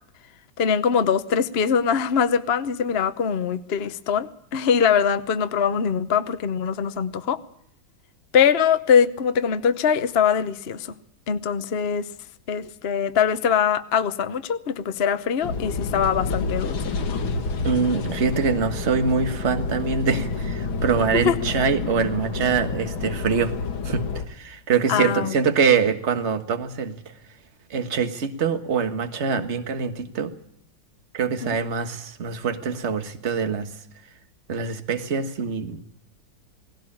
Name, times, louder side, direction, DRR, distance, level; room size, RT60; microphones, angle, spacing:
voice 1, 0.6-7.4 8.3-10.9 11.3-12.1 12.5-16.9 21.2-21.3 24.9-25.3 31.4-31.6, left 7 dB, 45° left, 11 dB, 0.8 m, -22 dB
sound 1, 15.4-24.3, left 4 dB, 80° left, 2.4 m, -29 dB
voice 2, 17.6-23.5 23.8-27.0 27.7-30.3 31.1-33.7 34.5-35.8, right 5 dB, 35° right, 8 dB, 1.6 m, -24 dB
18.5 x 17.5 x 8.7 m, 0.70 s
omnidirectional pair, 2.1 m